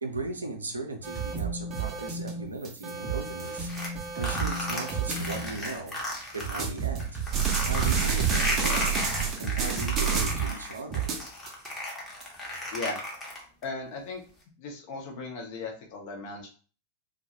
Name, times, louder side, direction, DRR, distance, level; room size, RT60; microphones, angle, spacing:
voice 1, 0.0-3.8 4.1-6.0 6.3-7.2 7.6-9.0 9.4-11.1, right 3 dB, 75° right, 3 dB, 0.4 m, -37 dB
sound 1, 1.0-5.9 6.4-10.6 10.9-12.2, right 6 dB, 30° right, 0.6 m, -30 dB
sound 2, 3.4-6.6 7.0-13.6, left 1 dB, 15° left, 0.8 m, -34 dB
voice 2, 12.7-13.1 13.6-14.2 14.6-16.5, left 3 dB, 45° left, 1 dB, 0.7 m, -37 dB
2.2 x 2.0 x 2.8 m, 0.40 s
figure-of-eight pair, 90°, 0 cm